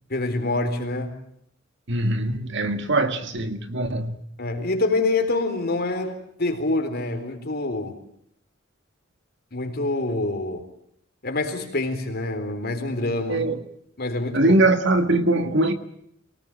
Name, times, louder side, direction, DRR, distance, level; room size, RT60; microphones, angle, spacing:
voice 1, 0.1-1.2 4.4-8.0 9.5-10.6 11.2-13.5 14.0-14.5, left 2 dB, 55° left, 3.8 m, -26 dB
voice 2, 1.9-4.2 13.3-13.6 14.3-15.7, right 2 dB, 65° right, 1.8 m, -22 dB
23.5 x 18.5 x 8.9 m
head